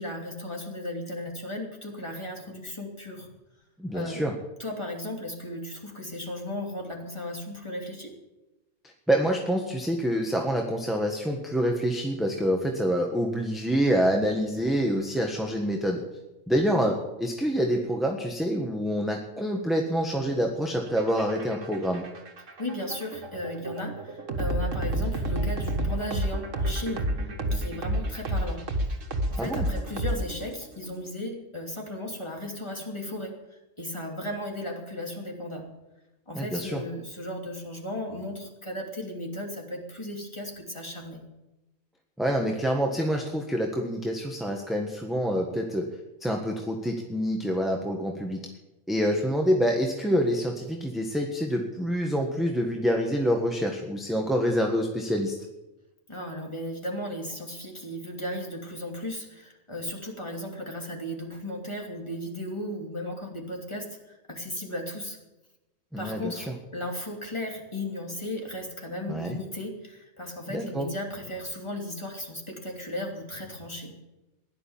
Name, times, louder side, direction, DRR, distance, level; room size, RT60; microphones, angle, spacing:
voice 1, 0.0-3.3 3.9-4.3 4.6-8.1 22.6-27.1 27.5-28.6 29.3-35.7 36.3-41.2 56.1-64.0 64.3-65.2 66.0-73.9, left 1 dB, 20° left, 0 dB, 3.0 m, -35 dB
voice 2, 3.8-4.3 9.1-16.0 16.5-22.0 29.4-29.7 36.3-36.8 42.2-45.9 46.2-48.4 48.9-55.4 65.9-66.5 69.1-69.4 70.5-70.9, equal, ahead, 1 dB, 1.4 m, -26 dB
sound 1, 20.9-30.6, right 1 dB, 75° right, 1.9 m, -30 dB
16.5 x 11.5 x 7.3 m, 1.0 s
omnidirectional pair, 1.3 m